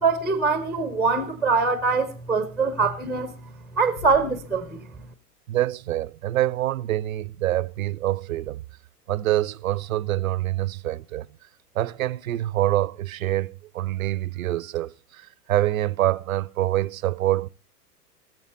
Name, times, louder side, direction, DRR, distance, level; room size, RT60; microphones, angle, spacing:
voice 1, 0.0-3.3 3.8-4.8, right 4 dB, ahead, 0.6 m, -23 dB
Bass drum, 4.0-5.4, left 9 dB, 70° left, 1.9 m, -43 dB
voice 2, 5.5-8.6 9.1-11.3 11.8-17.5, right 14 dB, 55° right, 0.6 m, -26 dB
20.5 x 7.0 x 4.0 m
figure-of-eight pair, 100°, 48 cm